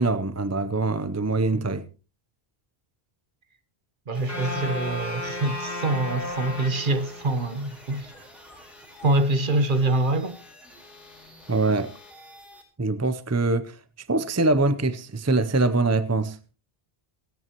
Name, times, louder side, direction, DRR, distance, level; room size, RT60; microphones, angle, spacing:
voice 1, 0.0-1.9 11.5-11.9 12.8-16.4, right 3 dB, 20° right, 0.5 m, -24 dB
sound 1, 4.1-12.6, left 1 dB, ahead, 4.2 m, -44 dB
voice 2, 4.1-8.1 9.0-10.4, right 2 dB, 55° right, 1.3 m, -25 dB
sound 2, 4.3-7.5, left 2 dB, 15° left, 3.0 m, -34 dB
27.5 x 9.3 x 3.0 m
omnidirectional pair, 1.0 m